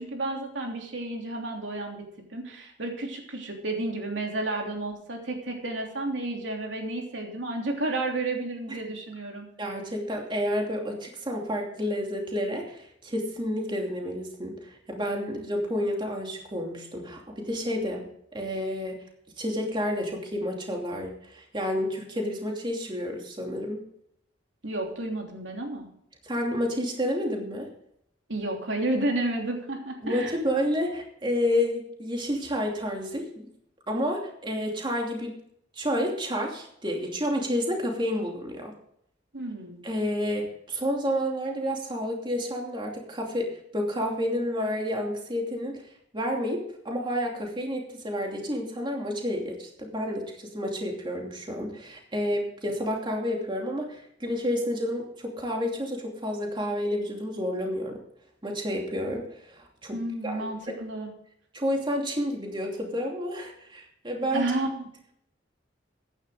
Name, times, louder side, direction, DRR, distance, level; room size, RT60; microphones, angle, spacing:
voice 1, 0.0-2.0 2.3-9.5 24.6-25.9 28.3-30.3 39.3-39.8 59.9-61.1 64.3-64.9, right 2 dB, 90° right, 1 dB, 3.1 m, -31 dB
voice 2, 9.6-19.0 19.4-23.8 26.2-27.7 30.0-33.3 33.9-35.3 35.8-38.7 39.8-43.5 43.7-45.8 46.1-58.0 58.4-59.2 59.5-60.0 60.2-60.7 61.5-64.5, equal, 25° right, 1 dB, 2.8 m, -30 dB
14.5 x 11.0 x 3.8 m, 0.70 s
head